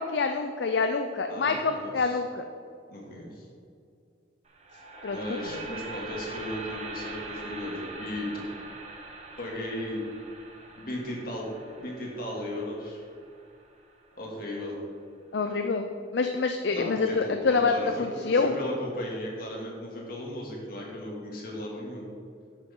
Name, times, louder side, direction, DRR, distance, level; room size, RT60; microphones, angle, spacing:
voice 1, 0.0-2.4 5.0-5.2 5.5-5.6 15.3-18.5, left 4 dB, 70° left, 6 dB, 0.5 m, -26 dB
voice 2, 1.3-2.2 2.9-3.5 5.1-8.5 9.4-10.0 10.8-11.5 11.8-13.0 14.2-14.8 16.7-22.1, left 1 dB, 55° left, -3 dB, 2.4 m, -36 dB
sound 1, 4.5-14.6, right 3 dB, 35° right, 1.2 m, -43 dB
10.5 x 8.2 x 3.8 m, 2.3 s
head